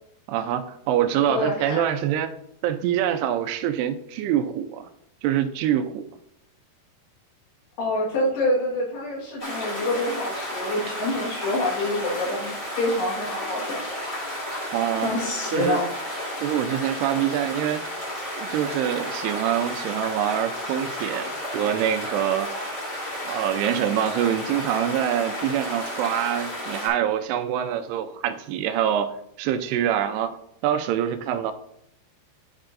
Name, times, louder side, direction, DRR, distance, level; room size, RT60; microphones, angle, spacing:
voice 1, 0.3-2.3 2.6-4.9 5.2-6.0 14.7-15.1 15.5-15.8 16.4-17.9 18.4-22.5 23.2-30.4 30.6-31.5, right 10 dB, 85° right, 8 dB, 2.6 m, -25 dB
voice 2, 1.3-1.9 7.8-13.8 15.0-15.9, left 1 dB, 80° left, -3 dB, 3.7 m, -26 dB
sound 1, 9.4-26.9, left 1 dB, 30° left, 1.5 m, -32 dB
10.5 x 5.5 x 2.5 m, 0.75 s
omnidirectional pair, 4.8 m